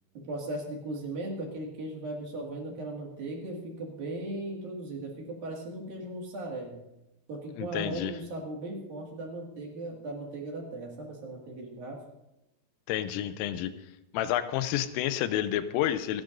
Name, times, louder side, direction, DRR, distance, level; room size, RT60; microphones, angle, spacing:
voice 1, 0.2-6.8 7.3-12.0, right 2 dB, 55° right, -1 dB, 3.5 m, -37 dB
voice 2, 7.6-8.1 12.9-13.7 14.1-16.2, left 11 dB, 90° left, 11 dB, 3.3 m, -29 dB
27.0 x 11.5 x 2.7 m, 0.91 s
omnidirectional pair, 5.6 m